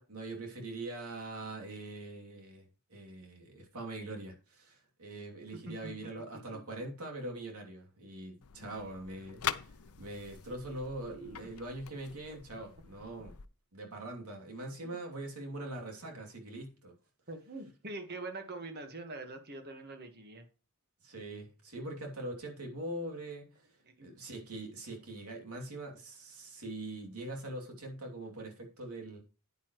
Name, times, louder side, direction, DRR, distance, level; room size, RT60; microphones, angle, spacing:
voice 1, 0.1-13.4 13.7-16.9 21.0-23.6 24.0-29.2, right 2 dB, 80° right, 2.9 m, -43 dB
sound 1, 8.4-13.5, left 9 dB, 75° left, 0.6 m, -43 dB
voice 2, 17.3-20.4 23.8-24.1, right 2 dB, 45° right, 1.5 m, -44 dB
9.6 x 9.5 x 3.1 m
head